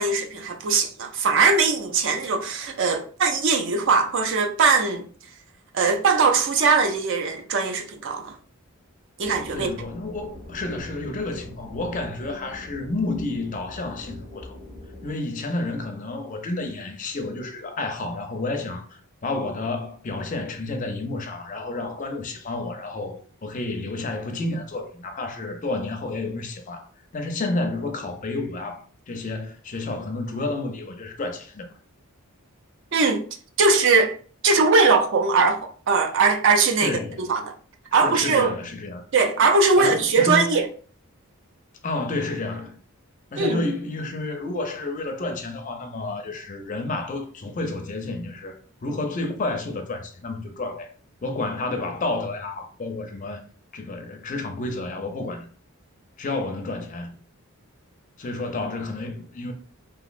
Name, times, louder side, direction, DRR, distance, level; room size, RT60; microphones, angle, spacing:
voice 1, 0.0-5.1 5.7-8.3 9.2-9.7 32.9-33.2 33.6-34.2 34.4-37.5 37.9-38.6 39.1-40.7 43.4-43.6, right 4 dB, 55° right, 0.4 m, -20 dB
sound 1, 9.2-15.1, left 1 dB, 35° right, 0.8 m, -42 dB
voice 2, 9.5-14.6 15.0-26.9 27.1-31.7 36.8-37.3 37.9-39.0 39.8-40.6 41.8-42.8 43.3-50.9 51.2-53.4 53.7-55.5 56.2-57.2 58.2-59.5, left 2 dB, 35° left, 0.4 m, -30 dB
3.0 x 2.4 x 2.4 m
head